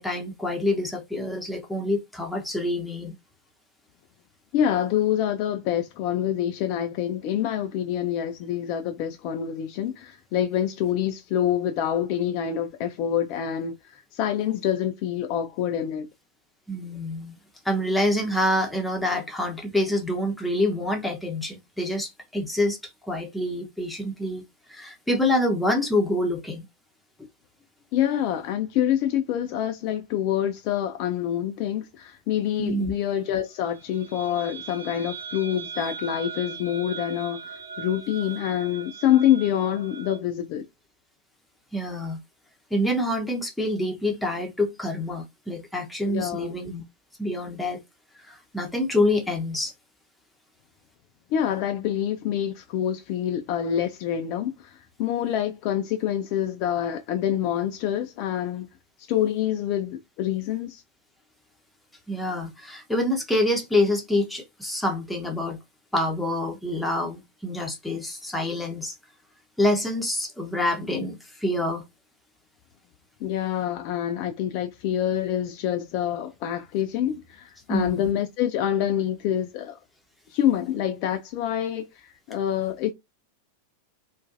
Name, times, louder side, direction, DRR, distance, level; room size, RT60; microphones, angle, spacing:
voice 1, 0.0-3.2 16.7-17.3 17.6-24.4 24.7-26.6 32.6-32.9 41.7-42.2 42.7-46.8 47.2-47.8 48.2-49.7 62.1-65.6 65.9-69.0 69.6-71.8 77.7-78.1, left 1 dB, 5° left, 0.6 m, -26 dB
voice 2, 4.5-16.1 27.9-40.6 46.1-46.6 51.3-58.7 59.1-60.8 73.2-79.8 80.3-81.9 82.3-82.9, left 10 dB, 45° left, 0.3 m, -26 dB
sound 1, 33.7-40.2, right 6 dB, 85° right, 0.7 m, -39 dB
2.5 x 2.2 x 2.4 m
figure-of-eight pair, 90°, 0 cm